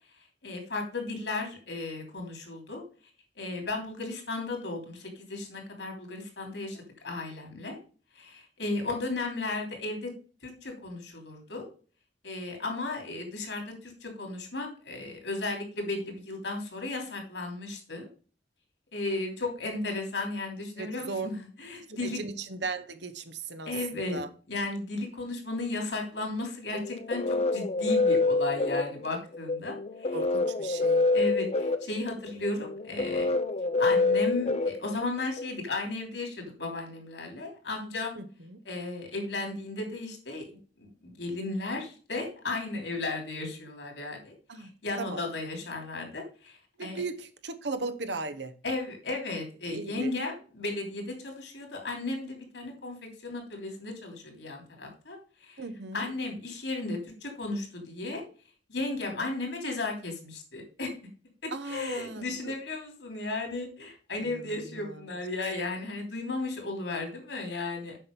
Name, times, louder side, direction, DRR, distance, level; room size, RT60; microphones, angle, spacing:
voice 1, 0.4-2.8 3.4-6.8 7.0-7.8 8.1-10.1 10.4-11.7 12.2-18.1 18.9-22.2 23.7-24.2 24.5-30.2 31.1-33.3 33.8-38.2 38.6-47.0 48.6-55.6 55.9-58.2 58.7-60.9 61.4-68.0, left 2 dB, 75° left, 3.1 m, -35 dB
voice 2, 20.8-21.3 21.9-24.3 30.1-31.0 38.2-38.6 44.5-44.7 45.0-45.2 46.8-48.5 49.7-50.1 55.6-56.1 61.5-62.5 64.2-65.0, right 3 dB, 70° right, 1.0 m, -37 dB
sound 1, 26.7-35.4, left 3 dB, 35° left, 0.7 m, -27 dB
7.7 x 5.9 x 5.3 m
head